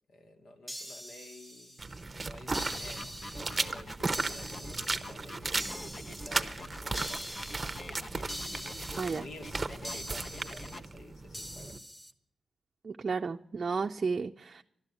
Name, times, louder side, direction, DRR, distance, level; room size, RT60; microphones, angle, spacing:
voice 1, 0.1-1.9 2.1-7.4 9.1-11.8, left 2 dB, 80° left, 3 dB, 2.2 m, -52 dB
sound 1, 0.7-2.0 2.5-3.7 4.1-5.1 5.6-6.4 6.9-7.8 8.3-9.2 9.8-10.8 11.3-12.1, equal, 10° left, 1.1 m, -43 dB
sound 2, 1.8-11.8, right 3 dB, 25° right, 0.9 m, -36 dB
sound 3, 2.6-10.8, left 1 dB, 30° left, 1.1 m, -45 dB
voice 2, 12.8-14.6, right 5 dB, 45° right, 5 dB, 0.5 m, -33 dB
12.5 x 12.5 x 8.3 m, 0.75 s
wide cardioid pair, 120°, 0 cm